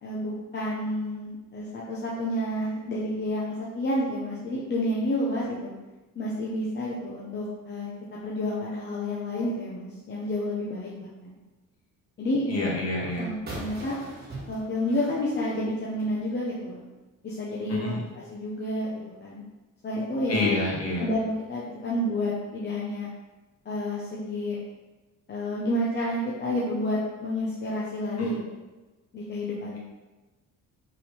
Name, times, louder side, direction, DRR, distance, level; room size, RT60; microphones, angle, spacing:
voice 1, 0.0-5.7 6.1-7.9 8.2-11.4 12.2-12.7 13.2-14.0 14.5-16.8 17.2-18.9 19.2-19.4 19.8-20.5 21.0-23.1 23.6-24.6 25.3-28.4 29.1-29.8, left 1 dB, 30° left, -6 dB, 0.8 m, -30 dB
voice 2, 12.5-13.3 17.7-18.0 20.3-21.1 28.2-28.3, left 2 dB, 45° left, -4 dB, 1.8 m, -28 dB
sound 1, 13.5-16.2, right 2 dB, 30° right, 1.4 m, -41 dB
5.7 x 5.2 x 3.3 m, 1.1 s
cardioid pair, 170°, 34 cm